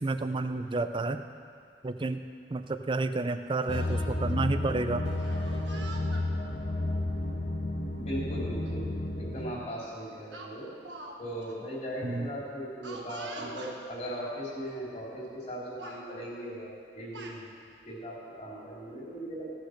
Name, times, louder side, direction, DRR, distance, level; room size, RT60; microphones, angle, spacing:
voice 1, 0.0-1.2 1.8-2.2 2.5-5.0 12.0-12.3, right 3 dB, 30° right, 9 dB, 0.4 m, -30 dB
sound 1, 3.7-9.5, left 1 dB, 85° left, 1.5 m, -32 dB
Speech, 5.2-6.3 7.2-7.4 8.7-8.8 9.1-9.4 10.3-11.2 11.4-11.5 12.8-13.8 14.7-14.8 15.1-15.5 15.8-16.0 16.8-17.4, right 3 dB, 85° right, 1.3 m, -45 dB
voice 2, 8.0-10.7 11.2-17.5 17.8-19.5, equal, 40° left, -5 dB, 3.3 m, -38 dB
15.5 x 6.5 x 6.5 m, 2.3 s
head